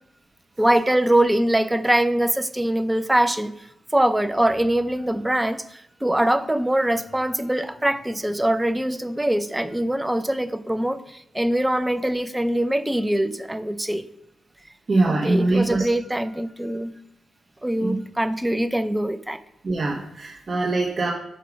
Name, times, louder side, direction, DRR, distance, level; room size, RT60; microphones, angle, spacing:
voice 1, 0.6-3.5 3.9-14.0 15.0-16.9 17.6-19.4, right 1 dB, 10° right, 11 dB, 0.4 m, -23 dB
voice 2, 14.9-15.8 17.8-18.0 19.6-21.1, right 2 dB, 35° right, -2 dB, 0.9 m, -22 dB
6.0 x 4.5 x 5.1 m, 0.83 s
wide cardioid pair, 125°, 0 cm